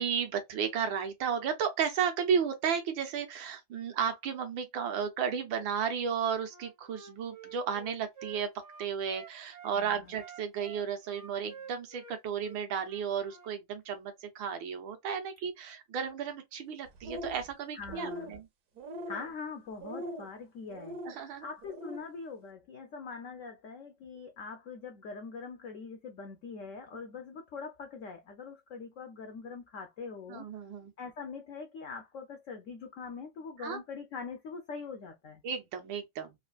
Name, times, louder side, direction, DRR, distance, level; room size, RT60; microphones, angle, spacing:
voice 1, 0.0-8.5 8.8-18.5 21.0-21.5 30.3-30.9 33.6-33.8 35.4-36.3, right 7 dB, 80° right, 1.5 m, -33 dB
Wind instrument woodwind instrument, 6.5-9.7 10.1-13.5, right 6 dB, 25° right, 0.4 m, -50 dB
voice 2, 9.8-10.1 16.0-16.1 17.7-18.4 19.1-21.0 21.2-30.5 31.0-35.4, left 5 dB, 85° left, 0.6 m, -43 dB
sound 1, 16.9-17.5 17.8-18.4 18.8-19.3 19.8-20.3 20.7-21.2 21.6-22.0, equal, 65° right, 1.1 m, -41 dB
4.1 x 2.5 x 2.3 m
omnidirectional pair, 2.1 m